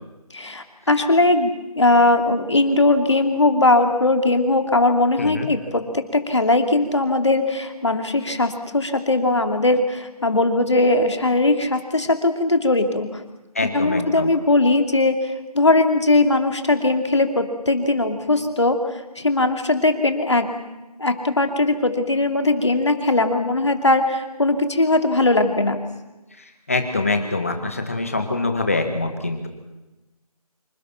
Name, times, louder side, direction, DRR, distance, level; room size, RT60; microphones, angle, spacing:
voice 1, 0.3-13.2 13.7-18.8 19.2-20.5 21.0-25.8, left 2 dB, 45° left, 6 dB, 2.7 m, -19 dB
voice 2, 5.2-5.5 13.6-14.3 26.7-29.5, left 3 dB, 20° left, 6 dB, 1.9 m, -24 dB
27.0 x 25.5 x 5.9 m, 1.1 s
figure-of-eight pair, 180°, 20 cm